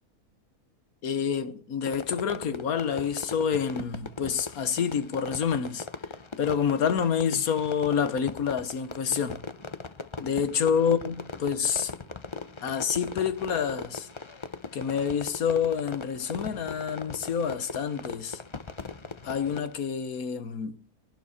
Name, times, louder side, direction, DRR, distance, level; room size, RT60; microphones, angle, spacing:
voice 1, 1.0-5.9 6.4-9.4 10.2-11.9 12.6-14.1 14.7-18.4 19.2-20.8, left 7 dB, 65° left, 1.6 m, -28 dB
Fireworks, 1.9-19.8, left 4 dB, 25° left, 0.6 m, -40 dB
23.0 x 11.5 x 4.2 m
omnidirectional pair, 1.6 m